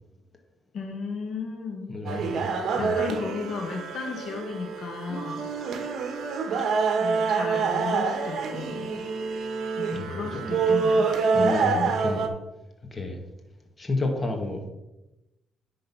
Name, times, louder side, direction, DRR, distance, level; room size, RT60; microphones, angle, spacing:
voice 1, 0.7-1.9 2.3-5.5 7.0-9.0 9.8-11.9, left 5 dB, 65° left, 2 dB, 1.3 m, -35 dB
voice 2, 1.9-3.0 9.9-10.5 11.3-12.3 12.9-13.2 13.8-14.7, left 2 dB, 25° left, 2 dB, 1.9 m, -31 dB
sound 1, 2.1-12.3, right 5 dB, 65° right, 1.0 m, -26 dB
10.5 x 3.9 x 5.6 m, 0.97 s
cardioid pair, 90°, 0 cm